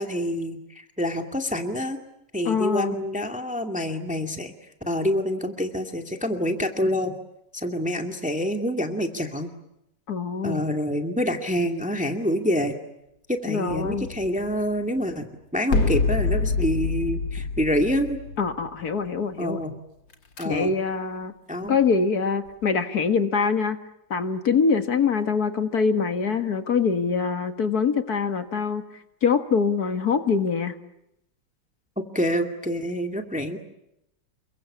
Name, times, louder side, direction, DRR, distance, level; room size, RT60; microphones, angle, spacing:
voice 1, 0.0-2.0 2.3-4.5 4.9-7.1 7.5-9.5 10.4-12.8 13.3-15.3 15.5-18.2 19.4-19.8 20.4-20.7 21.5-21.8 32.0-33.6, equal, 5° right, 5 dB, 2.2 m, -27 dB
voice 2, 2.5-2.9 10.1-10.6 13.5-14.1 18.4-19.6 20.4-21.3 21.7-23.8 24.1-28.8 29.2-30.7, left 5 dB, 55° left, 8 dB, 2.2 m, -24 dB
sound 1, 13.7-15.0 15.7-19.0 20.1-20.4, left 3 dB, 90° left, 3.1 m, -27 dB
29.0 x 23.5 x 8.7 m, 0.83 s
omnidirectional pair, 2.0 m